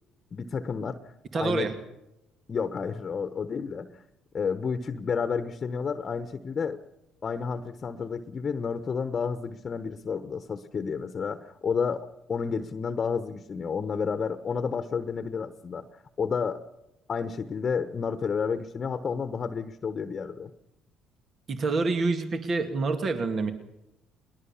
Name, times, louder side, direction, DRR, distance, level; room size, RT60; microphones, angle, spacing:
voice 1, 0.3-1.7 2.5-4.0 4.3-6.8 7.2-16.6 17.1-20.5, left 6 dB, 45° left, 10 dB, 1.1 m, -31 dB
voice 2, 1.3-1.7 21.5-23.5, right 3 dB, 50° right, 6 dB, 2.2 m, -27 dB
21.0 x 20.0 x 7.2 m, 0.90 s
supercardioid pair, 65°, 0 cm